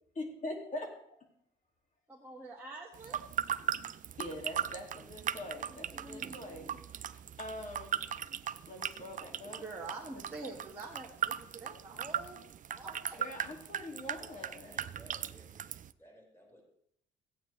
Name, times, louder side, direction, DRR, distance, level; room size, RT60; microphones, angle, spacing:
voice 1, 0.1-0.9 4.2-8.1 8.7-9.6 13.2-14.8, left 1 dB, 40° left, 2 dB, 2.4 m, -43 dB
voice 2, 2.1-3.2 5.7-7.3 9.6-12.4 12.7-13.2, right 3 dB, 10° right, -4 dB, 1.7 m, -46 dB
sound 1, 2.9-15.9, right 9 dB, 40° right, 0.4 m, -39 dB
voice 3, 14.4-16.6, equal, 10° left, -3 dB, 5.3 m, -58 dB
15.0 x 9.0 x 3.3 m, 0.72 s
cardioid pair, 90°, 20 cm